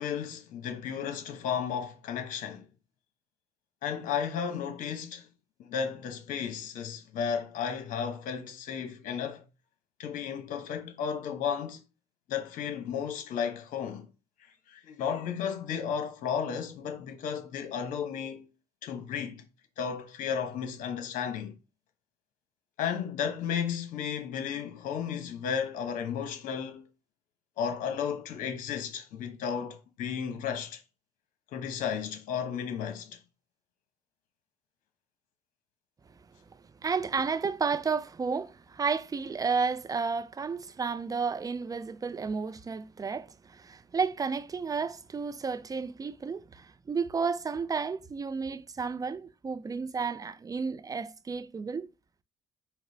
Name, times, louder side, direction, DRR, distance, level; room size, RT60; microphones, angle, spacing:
voice 1, 0.0-2.7 3.8-5.3 5.6-9.4 10.0-11.8 12.3-14.1 14.7-18.5 18.8-19.4 19.8-21.6 22.8-26.9 27.6-30.8 31.5-33.2, left 7 dB, 70° left, 1.0 m, -33 dB
voice 2, 36.8-51.9, right 5 dB, 25° right, 0.5 m, -32 dB
4.7 x 2.1 x 3.9 m
supercardioid pair, 70°, 14 cm